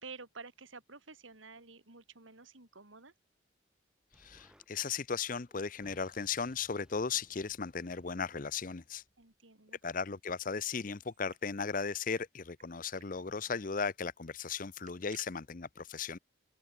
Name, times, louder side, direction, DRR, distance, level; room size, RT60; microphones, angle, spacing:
voice 1, 0.0-3.1 9.2-9.8, right 4 dB, 80° right, 3.4 m, -51 dB
Explosion, 4.1-4.7 5.5-9.3, equal, 5° right, 1.8 m, -65 dB
voice 2, 4.2-9.0 9.8-16.2, left 5 dB, 45° left, 0.7 m, -36 dB
sound 1, 10.5-11.5 11.8-11.9 12.1-12.7 13.0-13.1 13.4-13.6 14.6-15.3, right 9 dB, 40° right, 1.2 m, -59 dB
open air
head